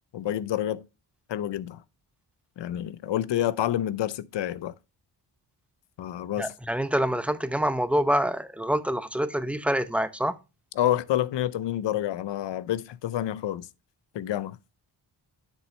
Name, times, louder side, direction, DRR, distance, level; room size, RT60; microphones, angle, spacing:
voice 1, 0.1-0.8 1.3-1.8 2.6-4.7 6.0-6.5 10.8-13.7 14.1-14.6, left 12 dB, 70° left, 0.6 m, -28 dB
voice 2, 6.4-10.4, equal, 5° right, 0.6 m, -26 dB
7.7 x 6.1 x 3.2 m
cardioid pair, 80°, 44 cm